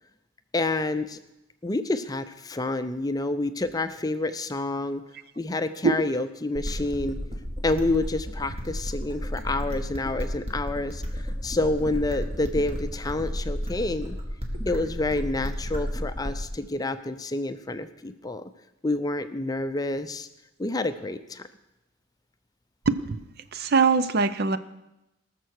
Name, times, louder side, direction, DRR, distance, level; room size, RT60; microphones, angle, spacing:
voice 1, 0.5-1.2 1.6-5.0 5.4-7.2 7.6-14.2 14.7-18.4 18.8-20.3 20.6-21.5, left 2 dB, 20° left, 10 dB, 0.5 m, -28 dB
sound 1, 6.5-16.5, equal, 30° right, 2.0 m, -32 dB
voice 2, 22.9-23.2 23.5-24.6, right 4 dB, 55° right, 13 dB, 0.6 m, -22 dB
18.5 x 6.8 x 6.5 m, 0.91 s
head